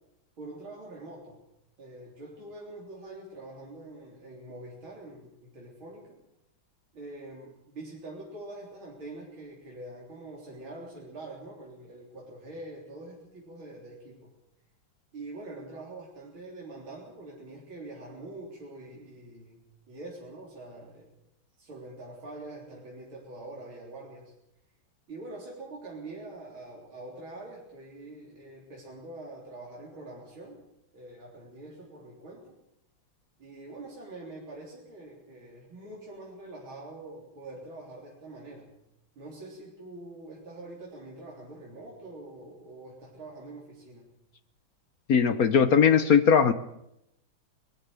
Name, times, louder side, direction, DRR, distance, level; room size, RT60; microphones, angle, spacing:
voice 1, 0.4-1.4 1.8-6.2 6.9-14.3 15.1-21.1 21.6-24.3 25.1-30.6 30.9-32.5 33.4-38.7 39.2-44.1, right 2 dB, 70° right, -4 dB, 4.7 m, -44 dB
voice 2, 45.1-46.5, left 7 dB, 55° left, 12 dB, 1.1 m, -19 dB
20.5 x 14.0 x 9.0 m, 0.83 s
omnidirectional pair, 2.3 m